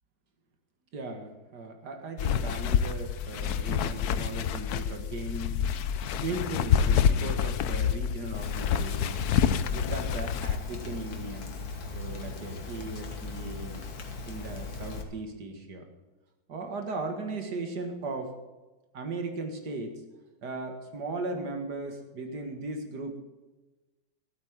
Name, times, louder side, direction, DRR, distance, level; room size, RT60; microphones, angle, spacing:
voice 1, 0.9-5.6 6.2-9.3 9.7-11.5 11.9-13.8 14.3-15.9 16.5-18.3 18.9-20.0 20.4-23.2, right 3 dB, 50° right, 5 dB, 2.1 m, -37 dB
sound 1, 2.2-10.6, left 8 dB, 90° left, 0.8 m, -27 dB
Rain, 8.3-15.0, left 4 dB, 45° left, 1.8 m, -39 dB
13.5 x 8.7 x 7.3 m, 1.2 s
omnidirectional pair, 2.4 m